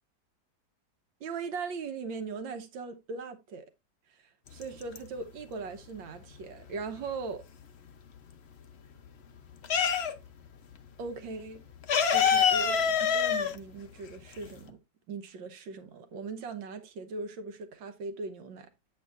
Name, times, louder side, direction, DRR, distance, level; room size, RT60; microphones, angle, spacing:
voice 1, 1.2-3.7 4.1-7.5 11.0-11.6 12.1-14.8 15.1-18.7, right 4 dB, 90° right, 1.7 m, -39 dB
sound 1, 4.5-5.4 5.7-7.7 8.1-10.5 10.7-10.9 11.1-14.7, left 7 dB, 60° left, 0.7 m, -27 dB
8.3 x 7.7 x 2.4 m
omnidirectional pair, 2.0 m